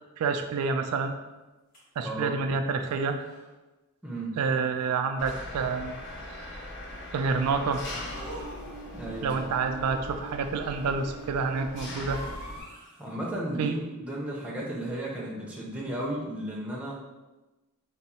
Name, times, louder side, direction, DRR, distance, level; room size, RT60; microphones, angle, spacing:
voice 1, 0.2-1.1 2.0-3.2 4.4-5.9 6.3-6.7 7.1-7.9 9.2-12.2 13.6-13.8, right 4 dB, 85° right, 6 dB, 0.3 m, -28 dB
sound 1, 1.7-1.8 2.8-3.5 4.7-5.5 8.1-9.1 12.0-13.1, equal, 40° left, 1.2 m, -44 dB
voice 2, 2.0-2.3 4.0-4.4 8.9-9.4 13.0-16.9, right 1 dB, 5° right, -4 dB, 0.7 m, -34 dB
Engine, 5.2-12.6, left 1 dB, 55° left, 0.7 m, -40 dB
3.6 x 2.0 x 4.1 m, 1.1 s
head